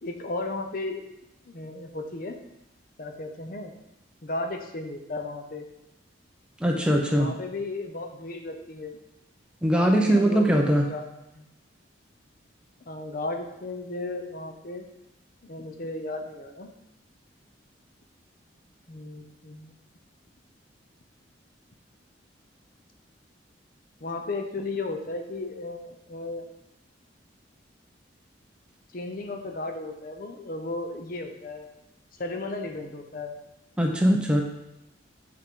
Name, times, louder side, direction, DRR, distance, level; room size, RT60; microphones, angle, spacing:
voice 1, 0.0-1.0 1.5-2.4 3.0-3.7 4.2-5.6 7.1-9.0 9.7-11.0 11.3-11.5 12.9-14.8 15.4-16.7 18.9-19.8 24.0-26.5 28.9-31.7 32.2-33.4, left 2 dB, 50° left, 5 dB, 0.7 m, -35 dB
voice 2, 6.6-7.3 9.6-10.9 33.8-34.4, equal, 5° right, 0 dB, 0.7 m, -21 dB
8.1 x 4.8 x 3.7 m, 0.89 s
head